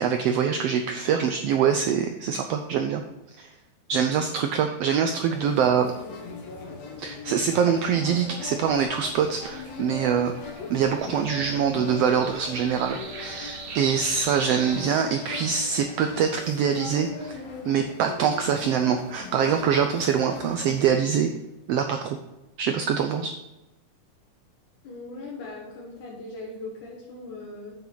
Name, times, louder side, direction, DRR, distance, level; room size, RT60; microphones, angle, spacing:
voice 1, 0.0-3.0 3.4-3.5 3.9-5.9 7.0-10.3 10.7-21.3 21.7-22.2 22.6-23.3, right 7 dB, 80° right, 6 dB, 1.4 m, -24 dB
sound 1, 5.3-20.8, left 3 dB, 60° left, 2.5 m, -39 dB
sound 2, 8.6-14.8, right 5 dB, 65° right, 2.1 m, -40 dB
voice 2, 24.8-27.7, left 2 dB, 85° left, -4 dB, 3.1 m, -39 dB
9.0 x 7.3 x 3.9 m, 0.96 s
omnidirectional pair, 3.4 m